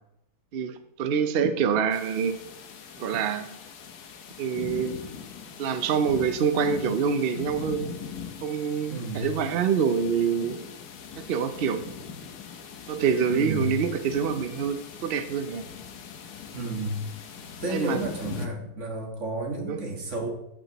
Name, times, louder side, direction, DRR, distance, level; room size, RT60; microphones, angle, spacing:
voice 1, 0.5-2.4 3.0-3.5 4.4-5.0 5.6-7.9 8.4-10.6 11.2-11.8 12.9-15.6 17.7-18.0 19.7-19.8, right 6 dB, 70° right, 9 dB, 0.5 m, -26 dB
sound 1, 1.9-18.5, left 7 dB, 80° left, 1.4 m, -41 dB
voice 2, 8.9-9.4 13.3-13.8 16.5-17.1 17.6-20.3, right 1 dB, 50° right, 1 dB, 1.8 m, -31 dB
14.5 x 6.2 x 3.0 m, 0.80 s
omnidirectional pair, 1.7 m